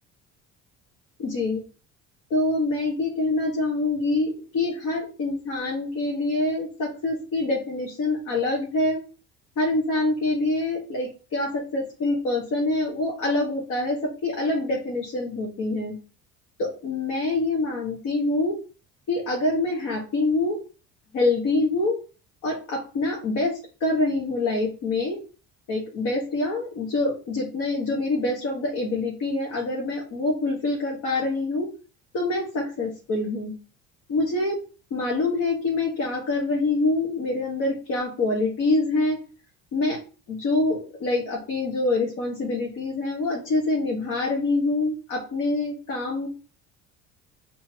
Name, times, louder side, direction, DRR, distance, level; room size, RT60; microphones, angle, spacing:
voice 1, 1.2-1.6 2.3-9.0 9.6-15.9 16.6-18.6 19.1-20.6 21.1-22.0 22.4-25.2 25.7-31.7 32.1-33.5 34.1-34.6 34.9-39.2 39.7-40.0 40.3-46.3, left 2 dB, 60° left, -2 dB, 1.3 m, -25 dB
4.3 x 2.8 x 2.8 m, 0.36 s
hypercardioid pair, 60°, 35 cm